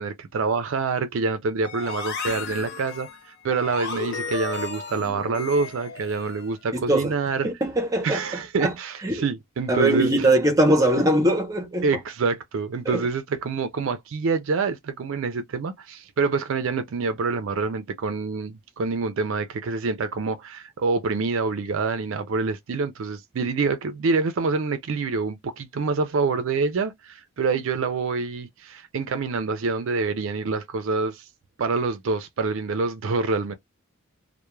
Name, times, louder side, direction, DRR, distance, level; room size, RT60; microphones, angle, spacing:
voice 1, 0.0-7.5 8.0-10.1 11.8-31.2 31.6-33.5, right 4 dB, 60° right, 0.4 m, -26 dB
sound 1, 1.6-6.5, left 5 dB, 50° left, 0.6 m, -34 dB
voice 2, 6.7-7.1 7.4-8.2 8.6-8.7 9.0-9.2 9.7-11.9 12.9-13.1, right 1 dB, 15° right, 0.6 m, -21 dB
2.2 x 2.1 x 3.0 m
head